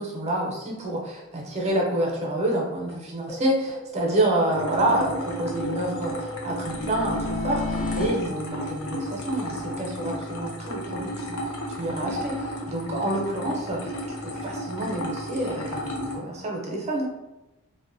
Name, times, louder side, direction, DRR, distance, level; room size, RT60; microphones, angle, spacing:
voice 1, 0.0-11.4 11.8-13.8 14.2-17.1, right 1 dB, 30° right, -1 dB, 0.5 m, -28 dB
sound 1, 1.7-1.8 2.1-2.2 2.5-2.6 2.9-3.0 3.3-4.6 4.9-8.1, left 2 dB, 25° left, 0.5 m, -34 dB
sound 2, 4.5-16.2, equal, 75° left, 0.5 m, -33 dB
2.5 x 2.1 x 2.5 m, 0.99 s
head